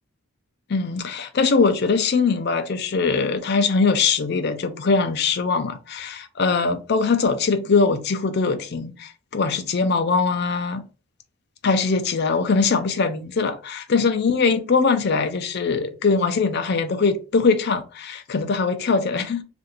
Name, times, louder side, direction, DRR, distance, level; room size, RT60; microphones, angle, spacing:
voice 1, 0.7-10.8 11.6-19.4, left 4 dB, 45° left, 0.4 m, -22 dB
2.6 x 2.5 x 3.9 m
head